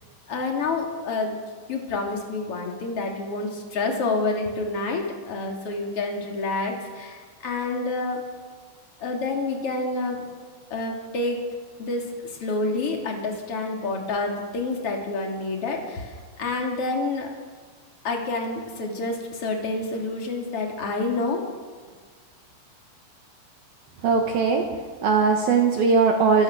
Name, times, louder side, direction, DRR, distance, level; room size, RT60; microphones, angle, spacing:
voice 1, 0.3-1.3 1.7-8.2 9.0-10.3 10.7-11.4 11.8-17.3 18.0-21.4, left 3 dB, 35° left, 1 dB, 3.2 m, -28 dB
voice 2, 24.0-24.7 25.0-26.4, right 5 dB, 65° right, 2 dB, 2.6 m, -19 dB
29.0 x 14.5 x 6.4 m, 1.5 s
omnidirectional pair, 5.6 m